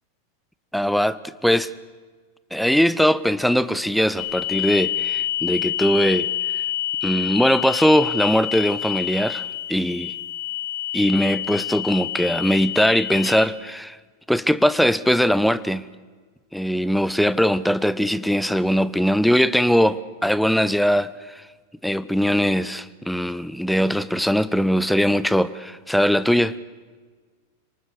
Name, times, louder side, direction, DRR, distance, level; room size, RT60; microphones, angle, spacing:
voice 1, 0.7-1.2 1.4-1.7 2.5-6.6 7.0-10.2 10.9-14.0 14.3-15.8 16.5-21.5 21.8-26.5, equal, ahead, 0.9 m, -20 dB
sound 1, 4.2-13.5, left 12 dB, 35° left, 1.9 m, -28 dB
29.5 x 19.5 x 6.4 m
figure-of-eight pair, 90°, 0 cm